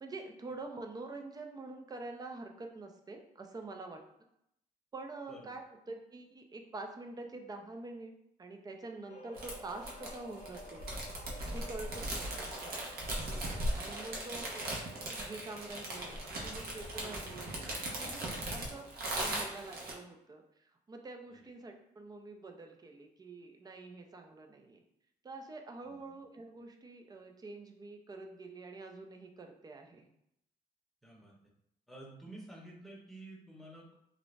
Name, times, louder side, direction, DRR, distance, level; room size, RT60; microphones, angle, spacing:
voice 1, 0.0-4.0 4.9-8.1 8.4-10.8 11.5-13.0 13.7-14.7 15.1-17.5 17.9-24.8 25.2-30.1, right 3 dB, 20° right, 4 dB, 0.4 m, -46 dB
sound 1, 9.1-18.9, left 1 dB, 50° left, 0.5 m, -52 dB
sound 2, 9.3-19.9, right 1 dB, 60° right, 0.7 m, -39 dB
voice 2, 31.0-31.3 31.9-33.9, right 1 dB, ahead, -3 dB, 0.8 m, -51 dB
2.5 x 2.0 x 3.1 m, 0.78 s
cardioid pair, 95°, 18 cm